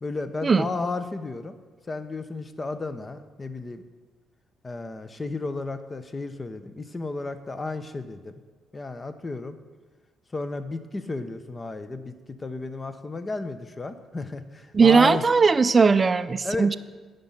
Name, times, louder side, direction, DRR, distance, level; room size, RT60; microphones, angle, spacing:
voice 1, 0.0-1.6 1.9-3.8 4.6-8.3 8.7-9.6 10.3-12.1 12.4-15.2 16.4-16.8, left 3 dB, 25° left, 11 dB, 0.7 m, -33 dB
voice 2, 14.7-16.8, right 5 dB, 30° right, 12 dB, 0.4 m, -18 dB
9.5 x 5.3 x 7.3 m, 1.4 s
cardioid pair, 90°, 0 cm